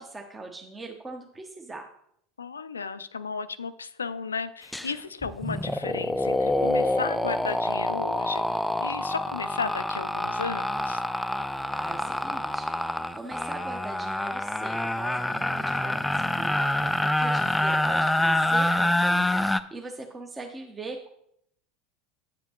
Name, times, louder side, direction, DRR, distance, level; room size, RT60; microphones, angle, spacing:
voice 1, 0.0-1.9 11.7-21.1, right 3 dB, 20° right, 3 dB, 0.8 m, -41 dB
voice 2, 2.4-11.0, left 5 dB, 85° left, 14 dB, 0.3 m, -34 dB
sound 1, 4.7-4.9 5.2-19.6, left 1 dB, 5° left, 0.4 m, -26 dB
8.6 x 7.0 x 2.9 m, 0.72 s
figure-of-eight pair, 75°, 0 cm